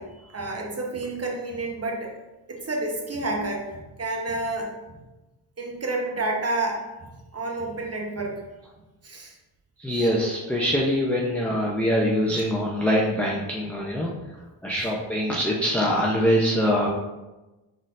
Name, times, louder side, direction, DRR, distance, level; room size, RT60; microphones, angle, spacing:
voice 1, 0.0-2.1 2.5-5.0 5.6-8.4 9.0-9.3 12.3-12.4, right 2 dB, 30° right, 1 dB, 1.0 m, -30 dB
voice 2, 9.8-14.3 14.6-16.9, equal, 5° left, -4 dB, 0.6 m, -24 dB
4.0 x 3.9 x 2.5 m, 1.1 s
supercardioid pair, 45°, 48 cm